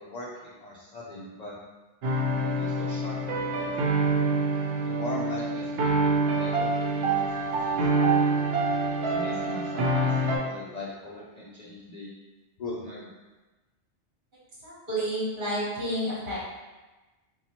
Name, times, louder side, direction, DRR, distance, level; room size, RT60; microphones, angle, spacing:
voice 1, 0.0-1.5 2.6-4.2 4.8-8.3 9.1-12.1 12.6-13.1, left 2 dB, 55° left, -5 dB, 0.5 m, -40 dB
sound 1, 2.0-10.4, right 2 dB, 65° right, 0.7 m, -26 dB
voice 2, 14.6-16.4, equal, 45° right, -7 dB, 1.2 m, -30 dB
4.1 x 2.3 x 2.8 m, 1.2 s
omnidirectional pair, 1.2 m